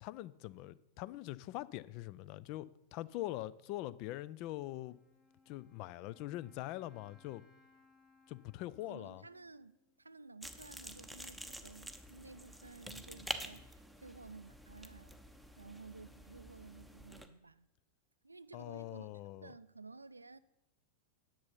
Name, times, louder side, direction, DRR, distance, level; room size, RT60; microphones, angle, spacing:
voice 1, 0.0-5.0 5.5-7.4 8.3-9.2 18.5-19.5, left 15 dB, 45° left, 0.3 m, -43 dB
Wind instrument woodwind instrument, 4.9-10.6, left 3 dB, 25° left, 1.3 m, -68 dB
voice 2, 8.8-15.2 15.6-17.7 18.2-19.1 19.4-20.4, right 3 dB, 80° right, 0.3 m, -54 dB
sound 1, 10.4-17.3, equal, ahead, 0.7 m, -48 dB
10.5 x 7.0 x 5.6 m
figure-of-eight pair, 90°, 0 cm